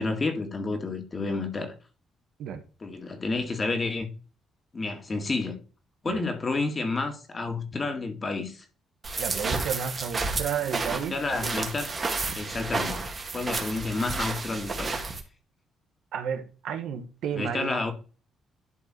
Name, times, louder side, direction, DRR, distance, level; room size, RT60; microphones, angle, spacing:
voice 1, 0.0-1.7 2.8-4.1 4.7-5.6 6.0-8.6 10.9-11.9 12.3-13.0 13.3-15.0 17.3-17.9, left 3 dB, 35° left, 2.0 m, -30 dB
sound 1, 9.0-15.2, right 3 dB, 35° right, 1.9 m, -31 dB
voice 2, 9.2-11.1 11.4-11.6 16.1-17.8, right 8 dB, 80° right, 1.3 m, -32 dB
11.5 x 4.0 x 4.3 m
cardioid pair, 90°, 0 cm